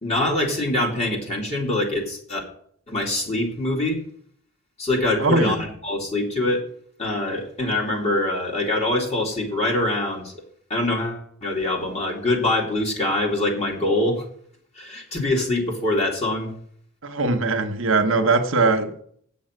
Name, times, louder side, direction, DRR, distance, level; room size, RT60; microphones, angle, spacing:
voice 1, 0.0-2.4 2.9-4.0 4.8-5.6 5.8-6.6 7.0-10.3 10.7-14.2 14.8-16.5, left 1 dB, 30° left, 2.6 m, -24 dB
voice 2, 5.2-5.6 17.0-19.0, right 3 dB, 70° right, 1.2 m, -21 dB
8.7 x 7.3 x 7.8 m
head